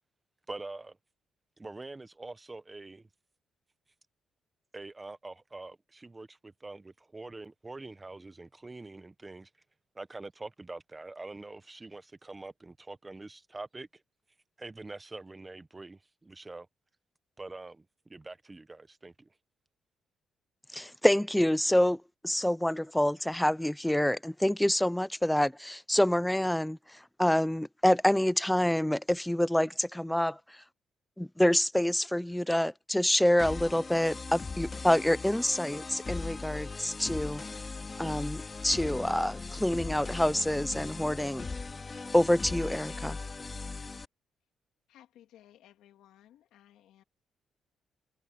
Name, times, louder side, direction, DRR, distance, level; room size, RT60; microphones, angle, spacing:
voice 1, 0.5-1.0 1.6-3.0 4.7-9.5 9.9-14.0 14.6-16.7 17.4-19.3, right 2 dB, 20° right, 1.2 m, -45 dB
voice 2, 20.7-30.6 31.2-37.4 38.0-41.5 42.1-43.2, left 1 dB, 5° left, 0.6 m, -27 dB
sound 1, 33.4-44.0, left 4 dB, 30° left, 2.3 m, -39 dB
voice 3, 44.9-47.0, left 12 dB, 85° left, 3.1 m, -58 dB
cardioid pair, 90°, 0 cm